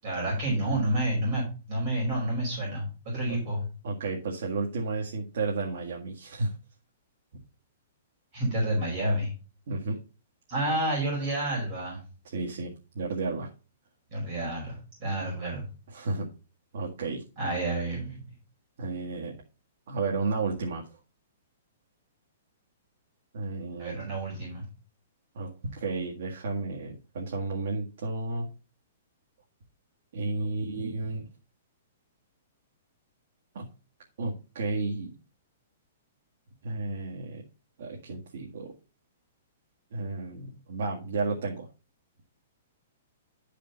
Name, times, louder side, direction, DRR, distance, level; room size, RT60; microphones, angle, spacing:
voice 1, 0.0-3.7 8.3-9.3 10.5-12.0 14.1-15.6 17.4-18.2 23.8-24.6, right 1 dB, 30° right, -4 dB, 5.1 m, -29 dB
voice 2, 3.8-6.5 9.7-10.0 12.2-13.5 15.9-16.3 16.7-17.2 18.8-19.4 19.9-20.8 23.3-24.1 25.4-28.5 30.1-31.3 33.6-33.7 34.2-35.1 36.6-37.4 37.8-38.7 39.9-41.7, right 3 dB, 60° right, -1 dB, 1.8 m, -32 dB
12.0 x 5.1 x 3.9 m, 0.34 s
hypercardioid pair, 175°, 0 cm